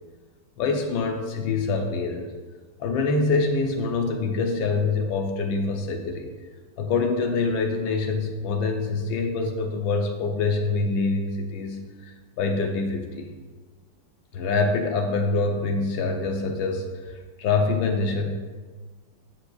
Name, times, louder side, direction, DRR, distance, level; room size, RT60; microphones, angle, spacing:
voice 1, 0.6-2.3 2.8-6.3 6.8-12.1 12.4-13.3 14.3-18.3, left 3 dB, 70° left, 4 dB, 1.4 m, -25 dB
9.4 x 6.9 x 2.3 m, 1.4 s
omnidirectional pair, 2.3 m